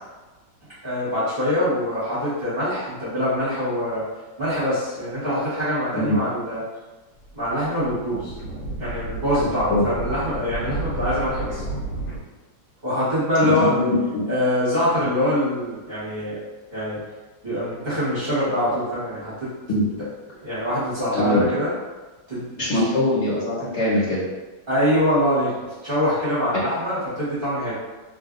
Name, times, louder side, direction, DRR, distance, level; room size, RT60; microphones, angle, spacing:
voice 1, 0.8-4.0 4.4-6.7 7.3-8.3 8.8-11.6 12.8-13.7 14.3-16.4 16.7-17.0 17.4-19.5 20.4-21.7 22.3-22.8 24.7-25.5 25.8-27.7, equal, 30° right, -13 dB, 1.3 m, -24 dB
sound 1, 7.2-12.2, right 2 dB, 75° left, 1.3 m, -31 dB
voice 2, 13.4-14.2 19.7-19.8 21.1-21.5 22.6-24.2, left 1 dB, 40° left, -8 dB, 1.3 m, -22 dB
3.0 x 2.5 x 2.5 m, 1.2 s
omnidirectional pair, 2.1 m